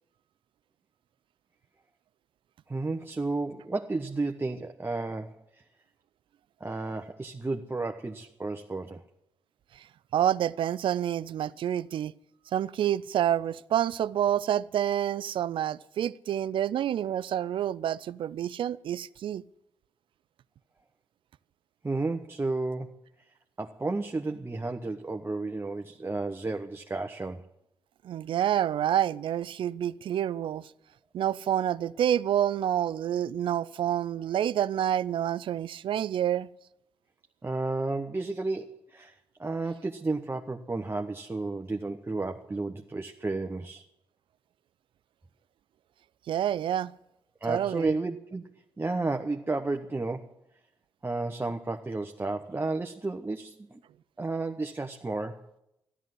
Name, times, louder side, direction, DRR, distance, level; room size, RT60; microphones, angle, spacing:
voice 1, 2.7-5.6 6.6-9.0 21.8-23.0 23.6-27.5 37.4-43.8 47.4-50.3 51.0-53.8 54.2-55.4, right 3 dB, 25° right, 1.1 m, -32 dB
voice 2, 10.1-12.1 12.5-19.4 28.0-30.7 31.1-36.5 46.3-46.9 47.5-47.9, right 10 dB, 70° right, 0.4 m, -28 dB
13.5 x 11.0 x 7.7 m
supercardioid pair, 45°, 9 cm